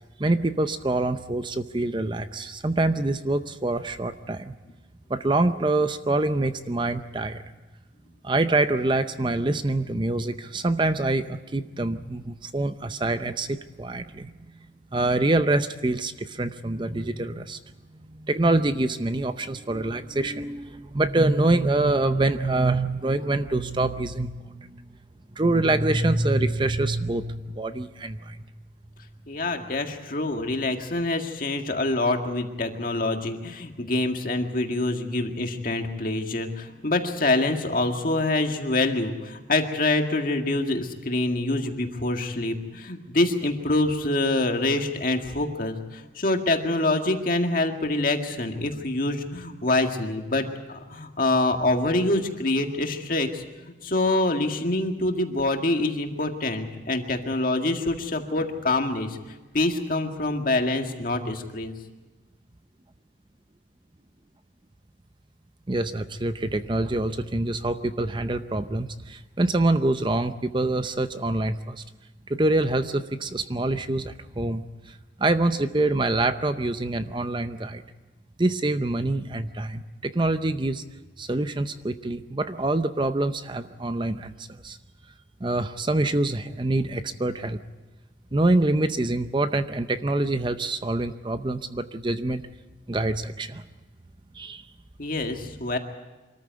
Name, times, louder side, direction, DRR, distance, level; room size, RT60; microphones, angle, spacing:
voice 1, 0.2-4.5 5.1-7.4 8.2-14.3 14.9-17.6 18.0-24.8 25.3-28.4 65.7-71.8 72.3-77.8 78.4-80.8 81.2-84.8 85.4-87.6 88.3-92.5 92.9-93.6 94.3-94.6, right 2 dB, 25° right, 10 dB, 0.6 m, -25 dB
voice 2, 29.3-53.4 53.8-59.2 59.5-61.7 95.0-95.8, left 2 dB, 50° left, 4 dB, 1.9 m, -25 dB
25.0 x 14.0 x 9.4 m, 1.2 s
head